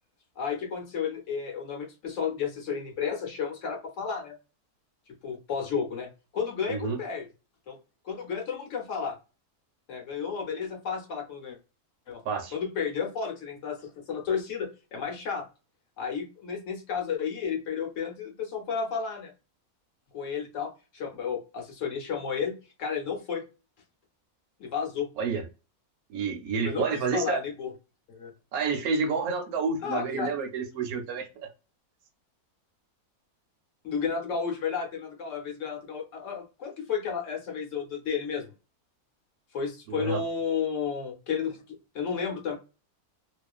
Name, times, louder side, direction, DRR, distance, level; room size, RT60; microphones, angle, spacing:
voice 1, 0.4-4.4 5.2-7.2 7.7-7.8 8.0-9.2 9.9-11.6 12.1-12.2 12.5-15.5 16.0-19.3 20.1-23.4 24.6-25.1 26.6-26.8 27.1-27.7 28.1-28.3 29.8-30.3 33.8-38.5 39.5-42.6, left 6 dB, 65° left, 0.9 m, -32 dB
voice 2, 6.7-7.0 12.2-12.5 25.2-25.4 26.1-27.4 28.5-31.5 39.9-40.2, right 5 dB, 75° right, 1.1 m, -29 dB
2.4 x 2.4 x 2.2 m
omnidirectional pair, 1.6 m